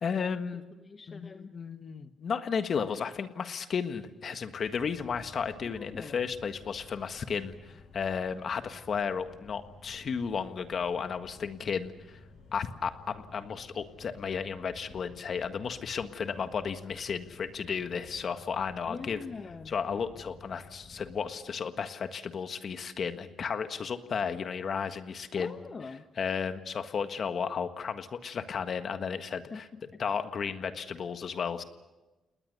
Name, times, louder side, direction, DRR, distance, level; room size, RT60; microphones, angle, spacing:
voice 1, 0.0-0.6 1.1-12.2 12.5-19.2 19.7-25.6 26.2-29.7 30.0-31.6, left 6 dB, 50° left, 9 dB, 1.6 m, -33 dB
voice 2, 0.8-1.5 5.6-6.2 18.9-19.7 25.4-26.0 29.5-30.0, left 4 dB, 35° left, 7 dB, 1.0 m, -43 dB
sound 1, 4.6-21.3, left 3 dB, 75° left, 6.2 m, -53 dB
29.5 x 19.5 x 6.8 m, 1.1 s
cardioid pair, 90°, 0 cm